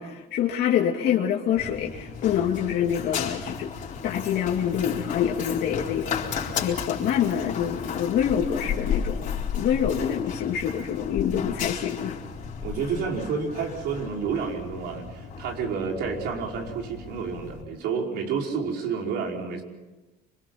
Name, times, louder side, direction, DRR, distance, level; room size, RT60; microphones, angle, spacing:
voice 1, 0.0-3.7 4.0-12.2, left 9 dB, 75° left, -1 dB, 2.6 m, -26 dB
Run, 1.6-17.6, left 7 dB, 50° left, 4.5 m, -34 dB
voice 2, 11.2-11.6 12.6-19.6, right 5 dB, 85° right, 1 dB, 5.3 m, -30 dB
26.0 x 24.5 x 6.0 m, 1.1 s
cardioid pair, 110°, 17 cm